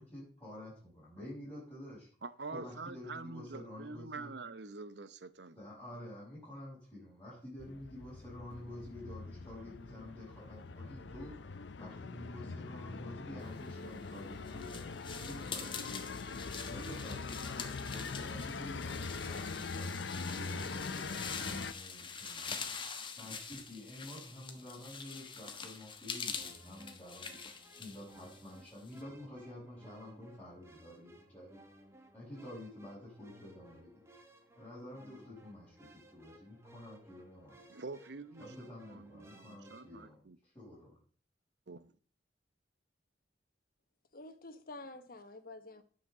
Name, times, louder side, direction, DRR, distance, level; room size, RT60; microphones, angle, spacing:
voice 1, 0.0-2.1 2.5-4.3 5.5-16.0 16.7-22.7 23.2-27.3 27.8-31.6 32.1-34.0 34.5-37.6 38.4-41.0, left 1 dB, 10° left, 6.2 m, -49 dB
voice 2, 2.2-5.6 37.7-40.4 41.7-41.9, right 3 dB, 65° right, 0.8 m, -46 dB
sound 1, 7.6-21.7, left 4 dB, 80° left, 0.6 m, -42 dB
sound 2, 13.8-29.0, left 5 dB, 30° left, 1.2 m, -45 dB
sound 3, 26.3-40.1, right 1 dB, 15° right, 1.5 m, -60 dB
voice 3, 44.1-45.8, left 2 dB, 55° left, 1.2 m, -49 dB
10.5 x 5.9 x 6.7 m
head